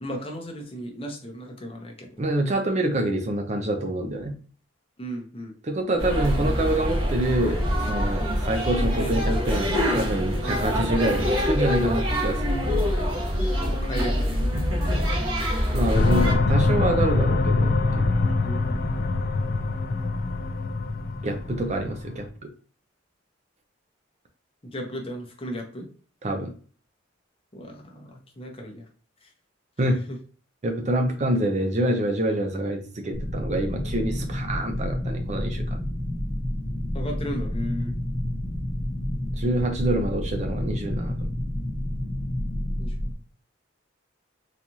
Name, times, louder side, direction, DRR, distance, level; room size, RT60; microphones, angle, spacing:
voice 1, 0.0-2.2 5.0-5.6 8.9-9.1 10.4-10.6 13.6-14.6 16.2-16.3 18.4-18.8 24.7-25.9 27.5-28.9 29.2-29.3 29.9-30.2 36.9-37.9 42.8-43.2, equal, 30° left, 2 dB, 0.8 m, -35 dB
voice 2, 2.2-4.3 5.6-7.6 7.9-9.7 9.9-12.8 15.7-18.3 21.2-22.3 26.2-26.5 29.8-30.0 30.6-35.8 39.4-41.2, right 1 dB, 35° right, 4 dB, 0.5 m, -26 dB
sound 1, 6.0-16.3, equal, 90° right, 1.3 m, -25 dB
sound 2, 15.9-22.3, left 3 dB, 50° left, 0.4 m, -24 dB
sound 3, 33.1-43.1, left 1 dB, 5° left, 1.1 m, -29 dB
4.0 x 2.4 x 2.9 m, 0.41 s
head